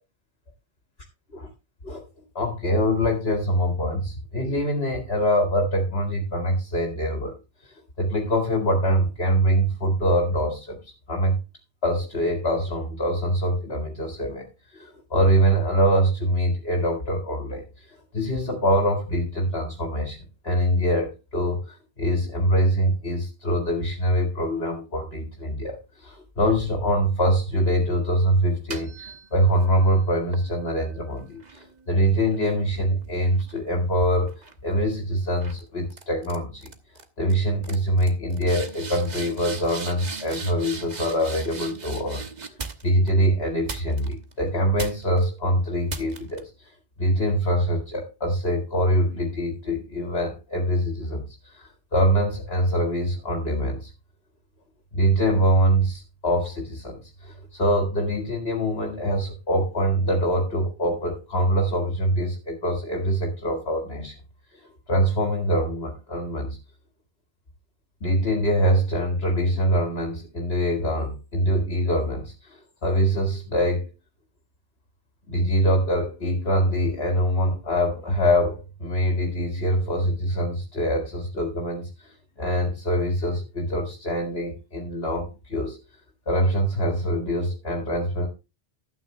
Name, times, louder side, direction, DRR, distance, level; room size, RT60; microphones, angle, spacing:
voice 1, 2.3-7.3 7.6-11.4 11.8-14.5 14.7-36.7 37.2-42.2 42.8-53.9 54.9-64.2 64.9-66.6 68.0-73.9 75.3-85.8 86.3-88.3, equal, 75° left, 2 dB, 2.3 m, -24 dB
sound 1, 28.5-29.7 30.3-33.9 34.3-34.7 35.4-35.6 35.9-36.4 36.6-37.0 37.3-37.4 37.6-43.1 43.7-44.3 44.8-45.2 45.9-46.4, right 4 dB, 45° right, 1.3 m, -38 dB
12.5 x 9.0 x 3.3 m, 0.28 s
omnidirectional pair, 1.1 m